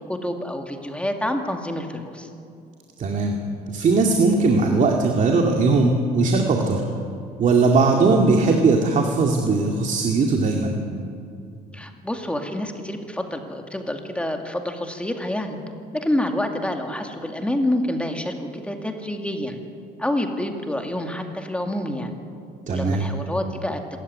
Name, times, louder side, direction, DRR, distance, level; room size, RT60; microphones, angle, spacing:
voice 1, 0.1-2.3 11.7-15.6 15.9-19.6 20.0-22.1 22.7-23.8, left 1 dB, 5° left, 4 dB, 2.3 m, -27 dB
voice 2, 3.0-3.4 3.7-6.8 7.4-10.8 22.7-23.1, right 3 dB, 45° right, 2 dB, 2.3 m, -19 dB
26.5 x 14.0 x 9.6 m, 2.5 s
cardioid pair, 110°, 17 cm